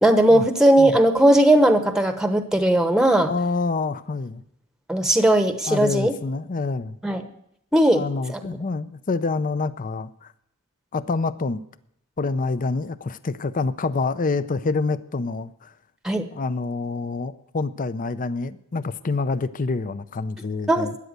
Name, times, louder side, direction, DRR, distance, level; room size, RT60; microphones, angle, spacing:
voice 1, 0.0-3.3 4.9-6.1 7.0-7.2 7.7-8.0 8.3-8.4 16.0-16.3 20.7-20.9, right 1 dB, 5° right, 8 dB, 1.0 m, -18 dB
voice 2, 3.3-4.4 5.7-7.0 7.9-10.3 10.9-11.6 12.2-15.7 16.3-20.9, left 3 dB, 40° left, 15 dB, 0.5 m, -27 dB
13.5 x 10.0 x 8.0 m, 0.76 s
head